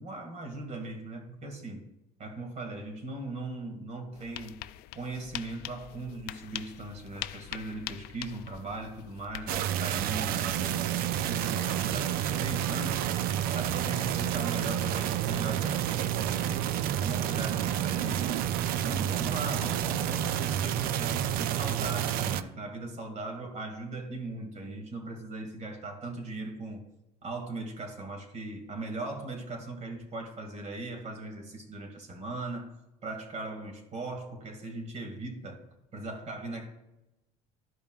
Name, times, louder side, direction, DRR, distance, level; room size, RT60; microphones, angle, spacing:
voice 1, 0.0-1.9 2.2-4.6 4.9-13.1 13.5-16.7 17.0-18.4 18.8-26.9 27.2-32.7 33.0-35.6 35.9-36.7, right 2 dB, 40° right, 3 dB, 2.1 m, -39 dB
sound 1, 4.1-9.7, left 15 dB, 65° left, 0.4 m, -43 dB
sound 2, 9.5-22.4, right 10 dB, 60° right, 0.5 m, -29 dB
13.5 x 5.2 x 2.4 m, 0.93 s
supercardioid pair, 100°, 17 cm